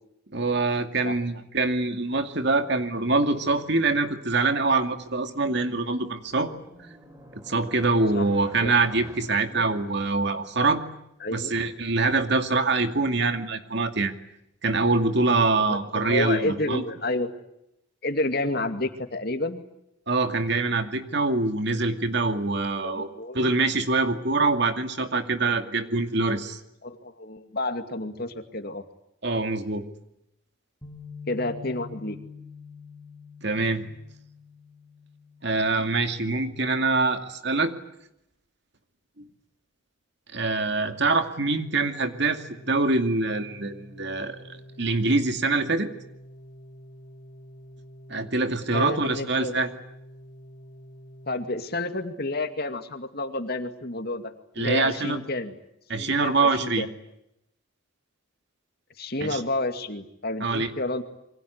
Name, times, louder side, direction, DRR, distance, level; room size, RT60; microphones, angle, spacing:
voice 1, 0.3-6.5 7.3-10.8 11.3-14.1 14.6-16.8 20.1-23.1 23.3-26.6 29.2-29.9 33.4-33.8 35.4-37.7 40.3-45.9 48.1-49.7 54.6-55.2 55.9-56.9 59.2-59.4 60.4-60.7, right 3 dB, 55° right, 7 dB, 2.4 m, -24 dB
sound 1, 5.5-10.4, equal, 15° right, 4.3 m, -49 dB
voice 2, 11.2-11.6 15.5-17.3 18.0-19.6 22.8-23.5 26.8-28.8 31.3-32.2 48.7-49.5 51.3-55.5 56.0-56.9 59.0-61.0, left 2 dB, 50° left, 7 dB, 2.4 m, -30 dB
Bass guitar, 30.8-37.1, left 5 dB, 10° left, 3.5 m, -46 dB
Organ, 41.2-52.1, equal, 80° left, 3.6 m, -48 dB
27.5 x 24.0 x 8.2 m, 0.80 s
head